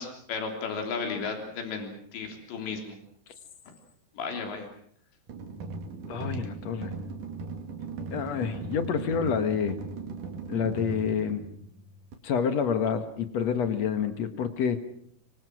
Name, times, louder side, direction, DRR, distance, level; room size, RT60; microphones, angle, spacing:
voice 1, 0.0-3.0 4.2-4.7, left 5 dB, 90° left, 4 dB, 5.7 m, -34 dB
sound 1, 5.3-12.1, right 4 dB, 50° right, 3.5 m, -38 dB
voice 2, 6.1-6.9 8.1-9.8 10.5-11.5 12.2-14.8, left 7 dB, 55° left, 9 dB, 2.0 m, -28 dB
25.5 x 24.5 x 6.3 m, 0.64 s
omnidirectional pair, 4.9 m